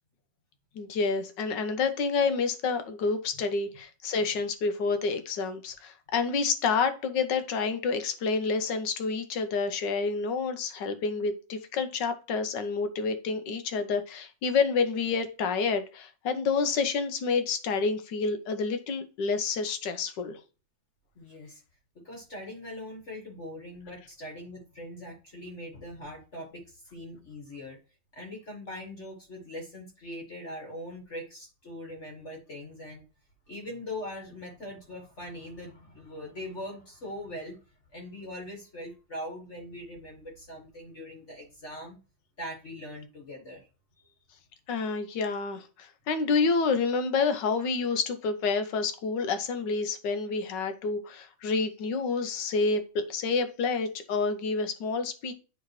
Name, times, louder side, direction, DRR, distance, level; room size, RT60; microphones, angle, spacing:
voice 1, 0.7-20.4 44.7-55.3, left 4 dB, 65° left, 9 dB, 1.4 m, -28 dB
voice 2, 21.1-21.6 21.9-27.8 28.1-33.0 33.5-37.6 37.9-42.0 42.4-43.7, left 1 dB, 40° left, 0 dB, 1.6 m, -41 dB
9.3 x 4.0 x 3.2 m, 0.33 s
omnidirectional pair, 2.2 m